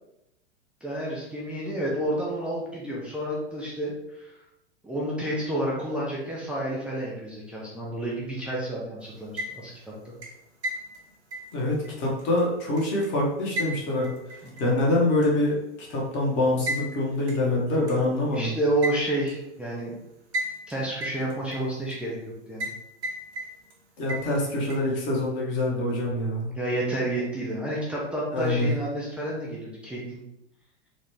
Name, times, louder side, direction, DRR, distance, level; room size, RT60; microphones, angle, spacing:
voice 1, 0.8-4.3 4.8-10.1 14.4-14.5 18.3-19.9 20.7-22.2 22.5-22.7 24.6-24.7 26.6-30.2, right 1 dB, 5° right, -5 dB, 0.3 m, -30 dB
sound 1, 9.2-9.8 10.2-13.1 13.6-14.8 15.2-15.3 16.7-16.9 17.3-17.4 17.9-18.0 18.8-19.4 20.3-20.7 21.0-21.9 22.6-22.8 23.0-23.8 24.1-24.8, right 1 dB, 65° right, 1.2 m, -33 dB
voice 2, 11.5-14.1 14.6-18.5 24.0-26.5 28.3-28.7, left 2 dB, 35° left, -3 dB, 1.3 m, -25 dB
3.9 x 2.5 x 3.4 m, 0.86 s
figure-of-eight pair, 100°, 35 cm